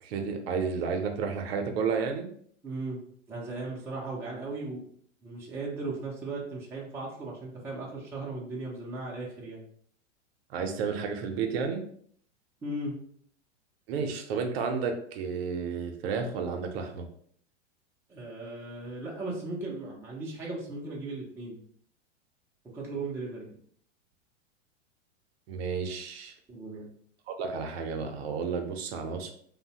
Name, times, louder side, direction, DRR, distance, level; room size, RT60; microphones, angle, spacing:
voice 1, 0.0-2.3 10.5-11.8 13.9-17.1 25.5-26.3 27.3-29.3, right 5 dB, 55° right, 5 dB, 0.6 m, -31 dB
voice 2, 2.6-3.0 3.3-4.8 5.2-9.6 12.6-13.0 18.1-21.6 22.7-23.6 26.5-26.9, right 2 dB, 5° right, -3 dB, 0.4 m, -37 dB
2.6 x 2.0 x 2.7 m, 0.62 s
hypercardioid pair, 110°, 36 cm